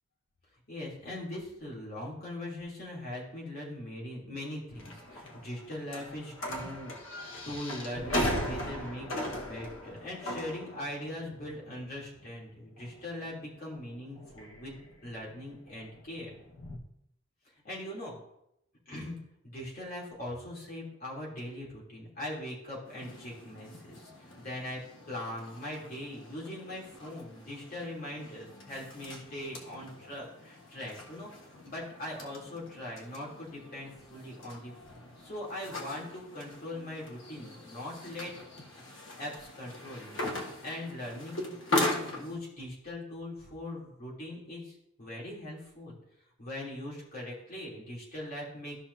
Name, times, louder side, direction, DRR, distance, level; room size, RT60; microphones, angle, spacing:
voice 1, 0.7-16.4 17.6-18.2 18.9-19.2 19.4-24.1 24.4-24.8 25.1-38.3 39.0-46.0 46.4-48.8, left 1 dB, 45° left, -5 dB, 3.2 m, -41 dB
sound 1, 4.8-16.8, equal, 80° left, 1.4 m, -38 dB
sound 2, 22.8-42.4, left 2 dB, 65° left, 1.4 m, -40 dB
13.5 x 5.7 x 2.7 m, 0.78 s
head